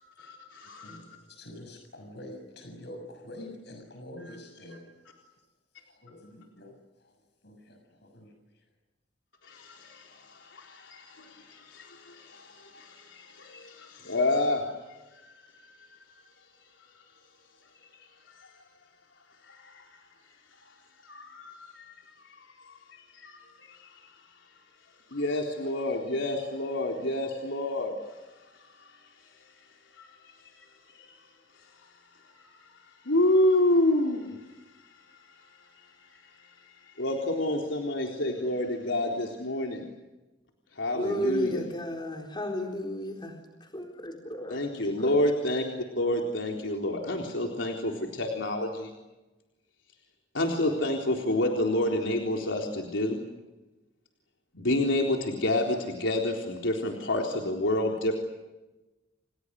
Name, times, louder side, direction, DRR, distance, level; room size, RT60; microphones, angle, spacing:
voice 1, 0.0-1.0 4.2-4.3 9.4-16.2 16.8-16.9 17.9-18.6 19.4-20.1 20.5-24.6 25.1-29.7 29.9-31.3 31.5-39.8 40.7-41.7 44.5-45.6 45.9-48.9 50.3-53.2 54.5-58.1, left 1 dB, 85° left, 1 dB, 4.0 m, -30 dB
voice 2, 0.8-4.9 5.8-7.2 7.4-8.6, left 1 dB, 65° left, 4 dB, 6.7 m, -46 dB
voice 3, 40.9-44.6 45.0-45.1, left 1 dB, 25° left, 2 dB, 4.1 m, -33 dB
29.5 x 29.5 x 6.6 m, 1.1 s
head